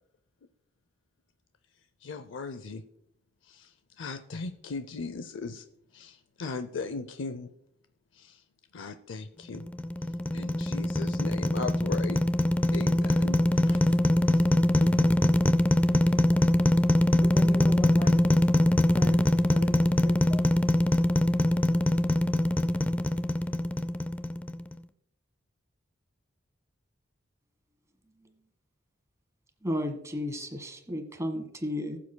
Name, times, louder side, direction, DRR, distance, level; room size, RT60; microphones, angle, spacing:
voice 1, 2.0-2.8 3.4-5.6 5.9-7.5 8.1-8.4 8.7-9.7 10.3-12.2 12.7-14.0 14.3-14.5 14.8-15.1, left 4 dB, 80° left, 10 dB, 0.5 m, -38 dB
sound 1, 9.5-24.7, left 1 dB, 10° left, 0.3 m, -23 dB
voice 2, 17.2-18.4 18.9-20.4, left 1 dB, 30° left, 3 dB, 0.8 m, -39 dB
voice 3, 29.6-32.0, left 1 dB, 15° right, 6 dB, 1.4 m, -33 dB
20.0 x 7.2 x 2.2 m, 0.75 s
head